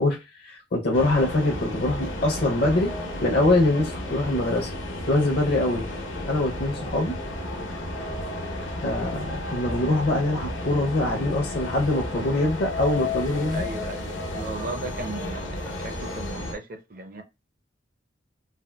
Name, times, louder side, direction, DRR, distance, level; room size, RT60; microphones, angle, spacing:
voice 1, 0.0-2.9 3.2-4.7 5.1-5.8 6.3-7.1 8.8-13.6, left 2 dB, 55° left, 0.5 m, -24 dB
sound 1, 0.9-16.5, left 1 dB, 85° left, 0.8 m, -32 dB
voice 2, 13.5-17.2, right 2 dB, 50° right, 0.6 m, -36 dB
3.5 x 2.4 x 2.2 m
head